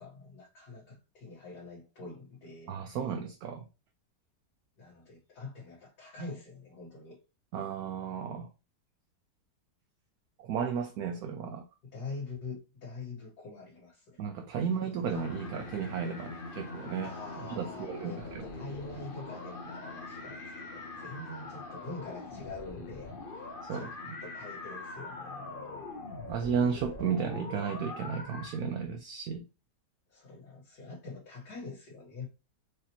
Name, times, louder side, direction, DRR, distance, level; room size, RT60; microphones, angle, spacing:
voice 1, 0.0-2.7 4.8-7.2 11.8-14.2 14.8-15.0 17.0-25.9 30.1-32.3, left 3 dB, 65° left, 1.9 m, -45 dB
voice 2, 2.7-3.6 7.5-8.5 10.4-11.6 14.2-17.1 17.5-18.5 23.6-24.1 26.3-29.4, right 6 dB, 70° right, 1.0 m, -34 dB
sound 1, 15.1-28.6, left 3 dB, 40° left, 0.8 m, -43 dB
4.8 x 2.8 x 2.9 m
omnidirectional pair, 1.9 m